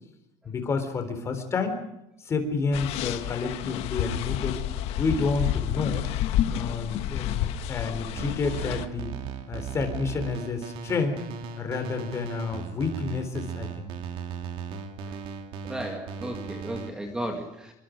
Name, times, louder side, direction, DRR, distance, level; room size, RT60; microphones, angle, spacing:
voice 1, 0.5-1.8 2.3-4.6 5.0-6.1 6.5-9.1 9.5-11.2 11.6-13.9, left 4 dB, 25° left, 7 dB, 3.9 m, -29 dB
sound 1, 2.7-8.9, left 11 dB, 55° left, 1.6 m, -30 dB
sound 2, 8.2-16.9, right 6 dB, 45° right, 2.9 m, -37 dB
voice 2, 15.6-17.7, right 1 dB, 5° right, 4 dB, 2.0 m, -34 dB
27.5 x 24.5 x 5.2 m, 0.84 s
cardioid pair, 175°, 12 cm